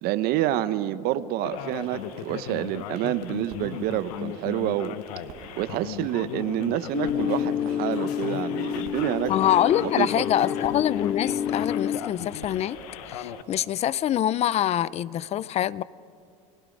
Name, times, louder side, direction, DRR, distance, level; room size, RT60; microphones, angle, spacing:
voice 1, 0.0-5.0 5.6-9.3 9.8-10.1, right 13 dB, 55° right, 14 dB, 0.9 m, -28 dB
Male speech man speaking, 1.4-13.4, left 11 dB, 85° left, 0.9 m, -37 dB
sound 1, 1.6-14.0, right 8 dB, 85° right, 1.9 m, -48 dB
sound 2, 6.9-12.0, left 9 dB, 65° left, 1.4 m, -29 dB
voice 2, 9.3-12.8 13.1-15.8, left 11 dB, 35° left, 20 dB, 0.5 m, -25 dB
30.0 x 20.5 x 5.3 m, 2.4 s
supercardioid pair, 115°, 18 cm